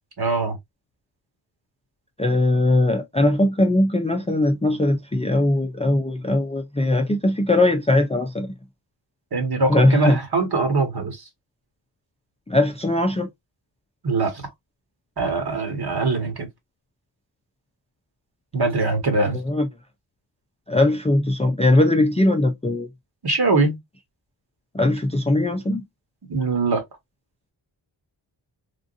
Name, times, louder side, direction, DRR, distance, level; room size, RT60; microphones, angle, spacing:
voice 1, 0.2-0.6 9.3-11.2 14.0-14.5 15.2-16.5 18.5-19.4 23.2-23.8 26.3-26.8, right 3 dB, 50° right, 1.7 m, -22 dB
voice 2, 2.2-8.5 9.7-10.2 12.5-13.3 19.3-19.7 20.7-22.9 24.7-25.8, left 1 dB, 15° left, 0.5 m, -20 dB
3.7 x 2.5 x 2.6 m
cardioid pair, 70°, 49 cm